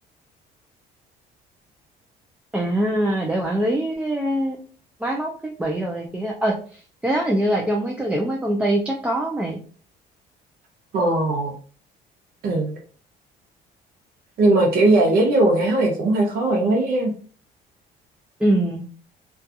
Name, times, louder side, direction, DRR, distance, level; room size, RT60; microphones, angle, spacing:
voice 1, 2.5-4.6 5.0-9.6 18.4-18.9, right 1 dB, 5° right, -1 dB, 0.4 m, -23 dB
voice 2, 10.9-11.6 12.4-12.8 14.4-17.1, right 2 dB, 65° right, 0 dB, 0.6 m, -19 dB
2.4 x 2.3 x 2.6 m, 0.41 s
cardioid pair, 110°, 17 cm